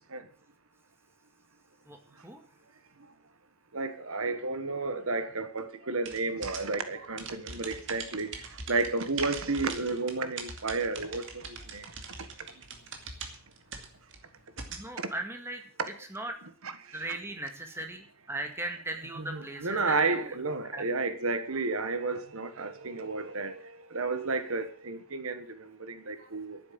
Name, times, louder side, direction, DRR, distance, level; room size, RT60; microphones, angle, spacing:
voice 1, 3.7-11.9 15.0-15.1 15.8-15.9 16.6-17.1 19.2-26.6, right 3 dB, 75° right, 1.5 m, -32 dB
sound 1, 6.1-14.9, right 4 dB, 55° right, 2.5 m, -43 dB
voice 2, 14.7-15.6 16.1-16.4 16.9-20.2 20.7-20.8, right 2 dB, 10° right, 2.0 m, -38 dB
11.5 x 9.5 x 8.6 m
head